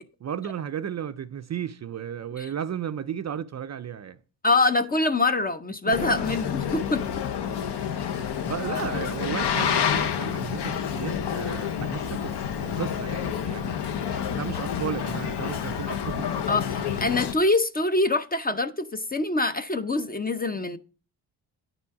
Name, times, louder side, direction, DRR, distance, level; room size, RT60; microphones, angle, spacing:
voice 1, 0.2-4.2 5.9-6.1 8.4-13.8 14.0-16.3, right 9 dB, 40° right, 0.4 m, -34 dB
voice 2, 4.4-7.0 16.5-20.8, left 2 dB, 20° left, 0.5 m, -24 dB
Boat Water vehicle, 5.9-17.3, left 8 dB, 60° left, 0.9 m, -29 dB
9.6 x 6.0 x 4.7 m
cardioid pair, 110°, 45 cm